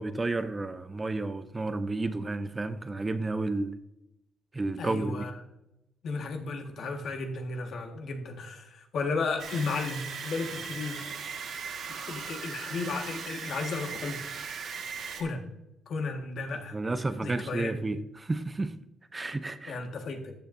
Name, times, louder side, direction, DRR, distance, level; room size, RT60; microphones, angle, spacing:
voice 1, 0.0-3.8 4.5-5.3 16.7-18.8 19.1-19.8, right 2 dB, 20° right, 11 dB, 0.6 m, -31 dB
voice 2, 4.8-5.4 6.0-11.1 12.1-14.2 15.2-15.4 15.9-16.8 17.2-17.7 19.7-20.3, left 4 dB, 65° left, 3 dB, 1.7 m, -34 dB
sound 1, 9.4-15.2, right 6 dB, 65° right, 1.7 m, -38 dB
13.5 x 7.8 x 2.7 m, 0.87 s
cardioid pair, 90°, 0 cm